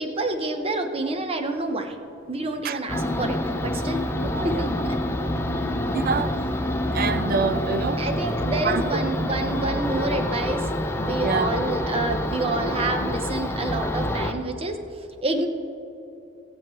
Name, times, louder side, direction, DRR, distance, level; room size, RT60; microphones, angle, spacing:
voice 1, 0.0-2.0 2.3-4.0 4.4-4.7 8.0-10.7 11.0-14.8 15.2-15.5, right 2 dB, 30° right, 0.9 m, -28 dB
voice 2, 2.6-3.1 4.2-4.7 5.9-6.4 6.9-8.0 8.6-9.0 11.2-11.5, right 5 dB, 50° right, 0.5 m, -27 dB
sound 1, 2.9-14.3, left 1 dB, 15° left, 0.6 m, -27 dB
20.5 x 7.9 x 3.1 m
head